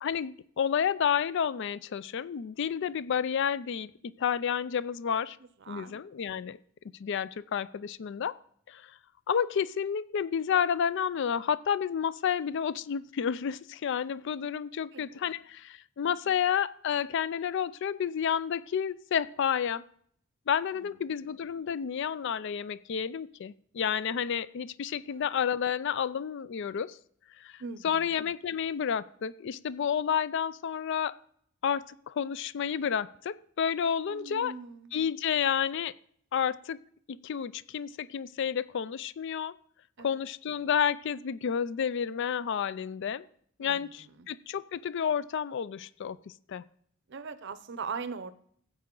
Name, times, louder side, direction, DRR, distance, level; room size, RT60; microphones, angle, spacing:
voice 1, 0.0-3.9 4.2-5.4 5.7-6.6 7.0-8.3 8.7-8.9 9.3-19.9 20.5-27.0 27.4-31.2 31.6-34.5 34.9-35.9 36.3-36.8 37.1-39.5 40.0-43.3 43.6-46.6, left 8 dB, 60° left, 18 dB, 0.4 m, -30 dB
voice 2, 5.6-5.9 14.9-15.3 16.2-16.4 20.7-21.2 25.1-25.3 27.6-28.2 34.0-34.9 40.0-40.2 43.6-44.3 47.1-48.3, right 5 dB, 60° right, 14 dB, 0.7 m, -41 dB
13.5 x 8.4 x 3.8 m, 0.63 s
head